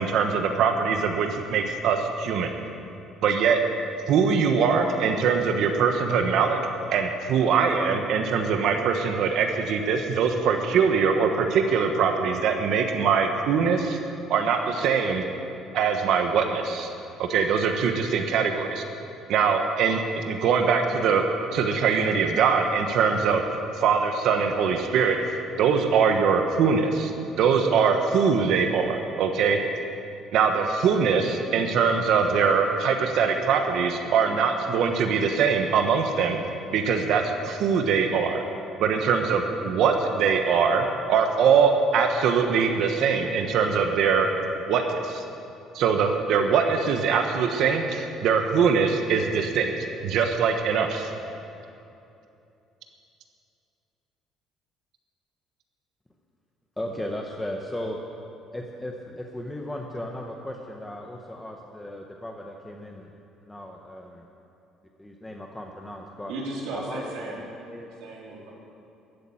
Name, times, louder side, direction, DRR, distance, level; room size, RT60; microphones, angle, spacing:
voice 1, 0.0-2.5 3.2-3.6 4.1-6.6 6.9-14.0 14.3-15.2 15.7-16.9 17.2-18.8 19.3-21.3 21.5-23.4 23.7-27.1 27.4-29.6 30.3-36.4 36.7-38.4 38.8-44.3 44.7-45.2 45.7-49.7 50.0-51.1, right 6 dB, 60° right, 5 dB, 1.0 m, -22 dB
voice 2, 56.8-58.0 58.5-63.1 63.5-64.3 65.0-66.3 66.7-67.4 67.7-67.9, left 1 dB, 10° left, 1 dB, 0.8 m, -36 dB
voice 3, 66.3-67.5 68.0-68.5, right 2 dB, 80° right, -3 dB, 3.4 m, -35 dB
13.5 x 8.4 x 8.5 m, 2.7 s
cardioid pair, 165°, 0 cm